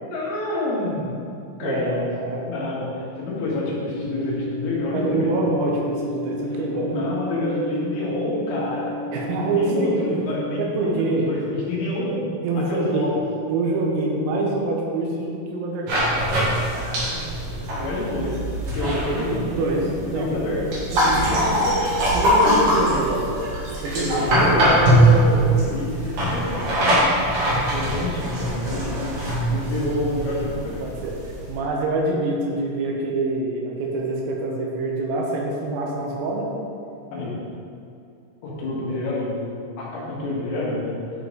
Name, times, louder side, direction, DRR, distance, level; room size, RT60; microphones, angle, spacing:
voice 1, 0.0-1.2 1.6-2.1 2.5-5.3 6.7-9.0 9.5-12.3 12.6-13.1 16.7-17.2 17.5-18.4 18.7-21.9 24.0-27.3 27.7-30.9 37.1-37.4 38.4-41.0, left 1 dB, 80° left, -6 dB, 4.3 m, -28 dB
voice 2, 1.6-2.4 4.9-6.9 9.1-9.9 10.6-11.3 12.4-13.1 13.5-16.0 17.9-18.0 19.5-19.8 20.1-20.5 20.9-21.7 22.1-23.4 23.7-24.2 25.7-25.8 30.8-31.1 31.5-36.5, right 3 dB, 85° right, -1 dB, 3.8 m, -25 dB
sound 1, 3.6-10.4, left 1 dB, 60° left, 3.3 m, -32 dB
sound 2, 15.9-31.6, right 1 dB, 50° right, 2.7 m, -22 dB
11.0 x 5.5 x 3.9 m, 2.5 s
omnidirectional pair, 6.0 m